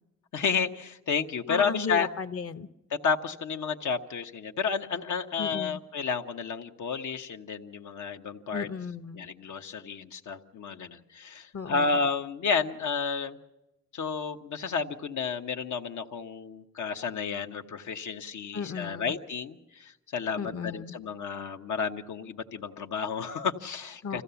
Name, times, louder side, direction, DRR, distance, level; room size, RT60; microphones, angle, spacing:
voice 1, 0.3-2.1 2.9-8.7 9.1-13.4 13.9-24.2, left 5 dB, 80° left, 5 dB, 1.2 m, -31 dB
voice 2, 1.5-2.7 5.4-5.8 8.5-9.2 11.5-12.0 18.5-19.1 20.4-20.9 24.0-24.2, left 5 dB, 50° left, 11 dB, 0.9 m, -35 dB
25.5 x 15.5 x 7.0 m, 0.98 s
cardioid pair, 95°, 29 cm